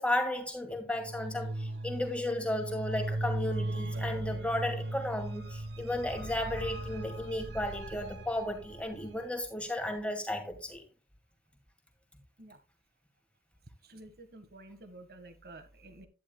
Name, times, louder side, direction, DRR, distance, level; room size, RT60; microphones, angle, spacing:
voice 1, 0.0-10.8, left 1 dB, 5° left, 2.3 m, -34 dB
sound 1, 1.0-9.3, right 1 dB, 75° right, 1.1 m, -38 dB
voice 2, 13.8-16.1, right 2 dB, 55° right, 1.7 m, -51 dB
11.5 x 10.0 x 2.3 m
head